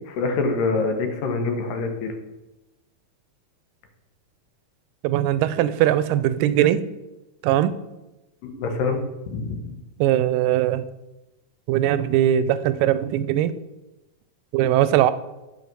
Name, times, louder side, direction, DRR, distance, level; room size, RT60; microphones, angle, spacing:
voice 1, 0.1-2.1 8.4-9.0 9.3-9.8, left 3 dB, 90° left, 5 dB, 2.8 m, -25 dB
voice 2, 5.0-6.9 7.4-7.7 10.0-10.8 11.7-13.5 14.5-15.1, right 12 dB, 90° right, 14 dB, 2.2 m, -20 dB
8.8 x 5.6 x 6.0 m, 1.0 s
omnidirectional pair, 3.8 m